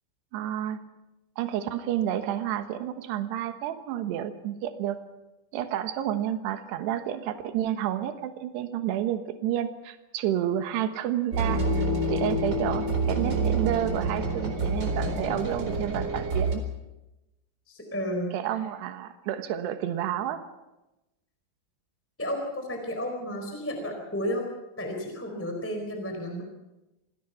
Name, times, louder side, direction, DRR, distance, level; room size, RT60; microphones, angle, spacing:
voice 1, 0.3-0.8 1.4-5.0 5.5-16.6 18.3-20.4, right 11 dB, 75° right, 8 dB, 3.3 m, -30 dB
sound 1, 11.3-16.6, right 2 dB, 25° right, 4.4 m, -27 dB
voice 2, 17.7-18.3 22.2-24.5 24.8-26.4, equal, 5° left, 3 dB, 3.7 m, -32 dB
28.5 x 19.0 x 5.8 m, 0.99 s
omnidirectional pair, 5.0 m